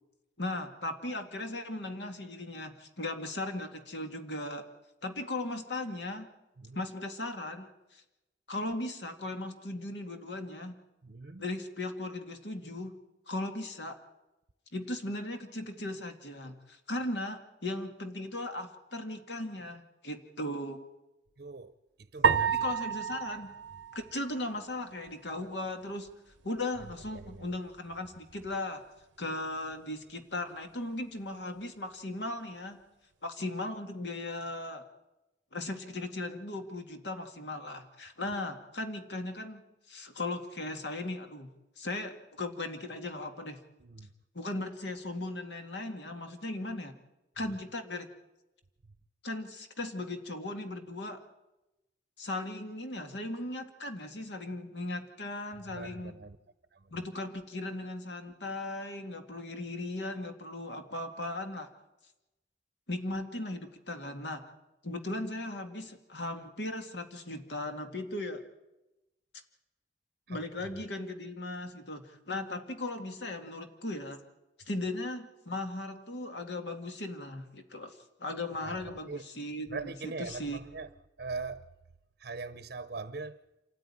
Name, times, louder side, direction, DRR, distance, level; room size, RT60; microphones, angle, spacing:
voice 1, 0.4-4.6 5.0-6.3 6.7-8.0 8.5-10.8 11.4-12.9 13.3-14.0 14.7-20.8 22.6-23.5 23.9-26.1 26.4-28.8 29.2-32.8 33.2-34.8 35.5-41.5 41.8-43.6 44.3-46.9 47.4-48.1 49.2-51.2 52.2-56.2 56.9-61.7 62.9-64.4 64.8-68.4 70.3-74.2 74.7-80.6, left 2 dB, 70° left, 2.2 m, -37 dB
voice 2, 11.0-11.4 21.4-21.7 22.0-22.7 27.1-27.5 43.8-44.1 47.4-47.6 55.7-56.4 56.7-56.8 70.3-70.7 78.6-78.8 79.1-79.2 79.7-80.9 81.2-81.6 82.2-83.4, right 4 dB, 55° right, 0.7 m, -41 dB
sound 1, 22.2-24.7, right 7 dB, 90° right, 0.7 m, -30 dB
27.5 x 13.5 x 9.9 m
head